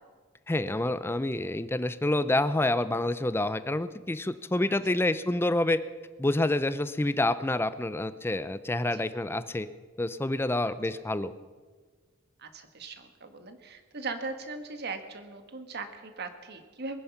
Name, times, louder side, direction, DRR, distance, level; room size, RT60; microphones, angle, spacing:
voice 1, 0.5-5.8 6.2-9.7 10.0-11.3, left 2 dB, 10° left, 14 dB, 0.5 m, -28 dB
voice 2, 12.4-17.0, right 3 dB, 55° right, 8 dB, 1.4 m, -39 dB
21.0 x 9.9 x 5.8 m, 1.5 s
head